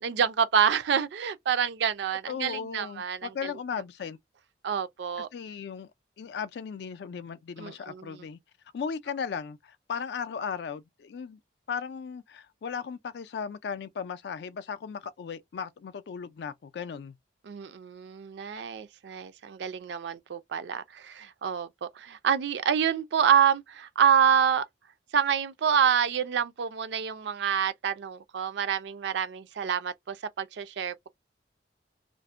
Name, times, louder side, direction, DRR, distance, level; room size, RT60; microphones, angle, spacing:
voice 1, 0.0-3.5 4.6-5.3 7.6-8.2 17.5-24.6 25.1-31.1, right 8 dB, 70° right, 0.4 m, -27 dB
voice 2, 2.3-4.2 5.2-5.9 6.2-8.4 8.7-11.4 11.7-17.1, left 6 dB, 65° left, 0.3 m, -36 dB
2.5 x 2.0 x 2.4 m
head